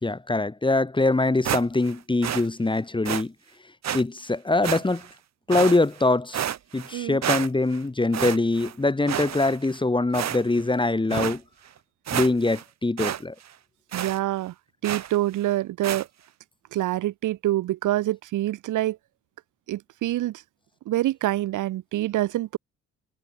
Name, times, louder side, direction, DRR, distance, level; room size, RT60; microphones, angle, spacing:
voice 1, 0.0-3.3 3.9-5.1 5.5-6.5 6.7-11.4 12.1-13.3, left 2 dB, 15° left, 3.0 m, -23 dB
sound 1, 1.4-1.9 2.2-2.5 3.0-3.2 3.8-4.0 4.6-5.1 5.5-6.0 6.3-6.9 7.2-7.8 8.1-8.7 9.1-9.8 10.1-10.6 11.1-11.4 11.8-11.9 12.1-12.6 13.0-13.2 13.5-13.6 13.9-14.2 14.8-15.2 15.8-16.0, right 10 dB, 60° right, 3.0 m, -30 dB
voice 2, 13.9-14.5 14.8-16.1 16.7-19.0 19.7-20.4 20.9-22.6, right 15 dB, 80° right, 2.0 m, -26 dB
cardioid pair, 90°, 30 cm